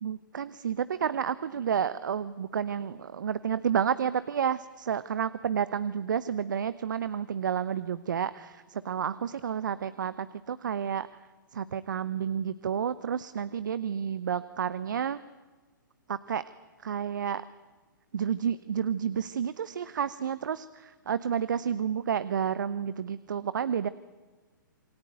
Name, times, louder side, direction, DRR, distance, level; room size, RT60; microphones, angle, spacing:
voice 1, 0.0-11.2 11.5-15.2 16.1-16.4 16.8-17.5 18.1-23.9, right 8 dB, 65° right, 16 dB, 0.9 m, -30 dB
27.5 x 23.0 x 9.2 m, 1.3 s
figure-of-eight pair, 120°, 11 cm